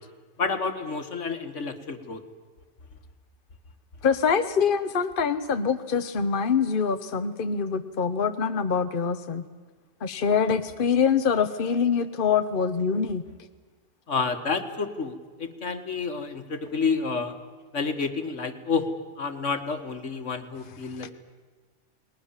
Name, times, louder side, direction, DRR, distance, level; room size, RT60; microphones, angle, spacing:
voice 1, 0.4-2.2 14.1-17.3 17.7-18.9 19.2-21.1, left 4 dB, 80° left, 7 dB, 2.1 m, -29 dB
voice 2, 4.0-9.4 10.0-13.2 21.0-21.1, left 6 dB, 50° left, 8 dB, 1.1 m, -24 dB
30.0 x 20.5 x 7.3 m, 1.3 s
omnidirectional pair, 1.2 m